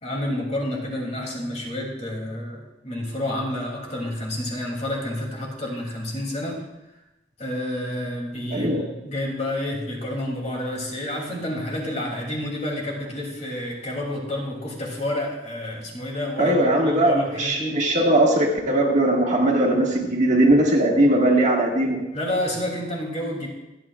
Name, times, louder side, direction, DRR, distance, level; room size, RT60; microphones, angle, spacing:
voice 1, 0.0-6.6 7.4-17.8 22.1-23.5, left 1 dB, 35° left, -1 dB, 2.9 m, -29 dB
voice 2, 8.5-8.8 16.4-22.0, right 1 dB, 40° right, -1 dB, 1.8 m, -19 dB
26.0 x 8.8 x 2.4 m, 0.98 s
head